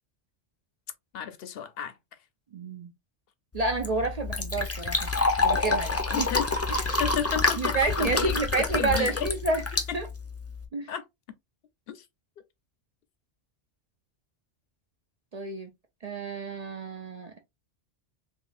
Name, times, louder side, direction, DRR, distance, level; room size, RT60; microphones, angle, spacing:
voice 1, 1.1-1.9 6.1-6.5 7.0-8.4 8.7-9.3 10.9-11.0 11.9-12.0, left 8 dB, 65° left, 0.8 m, -33 dB
voice 2, 2.5-2.9 3.5-5.1 5.4-6.3 7.6-9.6 9.9-10.1 10.7-10.9 15.3-15.7 16.0-17.4, right 3 dB, 55° right, 0.4 m, -29 dB
Fill (with liquid), 3.5-10.6, left 3 dB, 20° left, 0.4 m, -28 dB
3.6 x 3.1 x 2.5 m
omnidirectional pair, 1.2 m